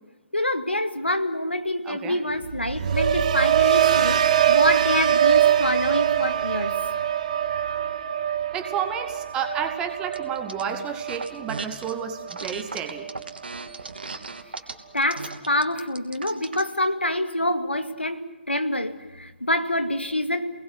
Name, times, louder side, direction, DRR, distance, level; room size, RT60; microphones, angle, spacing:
voice 1, 0.3-4.2 4.5-6.7 14.9-20.5, left 1 dB, 80° left, 8 dB, 2.2 m, -26 dB
voice 2, 1.8-2.2 8.5-13.1, right 7 dB, 15° right, 6 dB, 2.2 m, -31 dB
sound 1, 2.4-12.5 12.9-13.3, right 10 dB, 40° right, 1.1 m, -23 dB
sound 2, 10.1-10.6 11.0-11.9 12.3-16.7, right 3 dB, 65° right, 2.9 m, -36 dB
29.5 x 20.5 x 8.0 m, 1.2 s
figure-of-eight pair, 140°, 6 cm